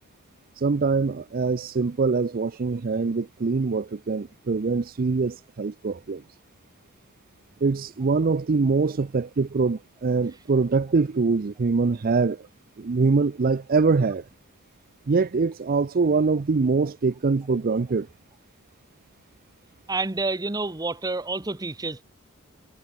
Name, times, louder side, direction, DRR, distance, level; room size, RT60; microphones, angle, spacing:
voice 1, 0.6-6.2 7.6-12.4 12.8-14.2 15.1-18.1, right 4 dB, 45° right, 0.5 m, -23 dB
voice 2, 19.9-22.0, right 3 dB, 20° right, 1.0 m, -28 dB
head